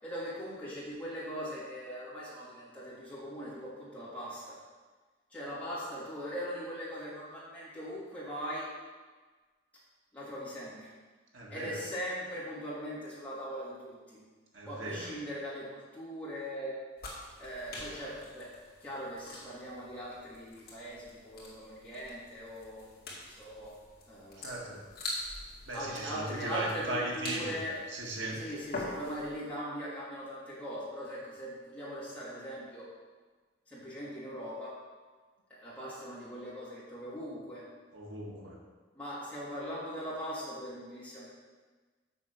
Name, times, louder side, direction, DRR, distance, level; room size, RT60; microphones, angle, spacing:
voice 1, 0.0-4.6 5.3-8.7 10.1-10.9 11.5-14.2 14.6-16.8 17.4-18.5 18.8-22.9 23.3-23.8 24.1-24.6 25.7-27.8 28.3-32.9 33.7-34.7 35.5-37.6 38.9-41.3, equal, 5° left, -9 dB, 3.0 m, -40 dB
voice 2, 11.3-11.8 14.5-15.2 24.4-24.8 25.7-27.6 27.9-28.5 37.9-38.6, right 2 dB, 85° right, -2 dB, 1.7 m, -37 dB
sound 1, 17.0-29.4, left 1 dB, 50° left, 2.4 m, -45 dB
7.1 x 5.8 x 7.2 m, 1.4 s
head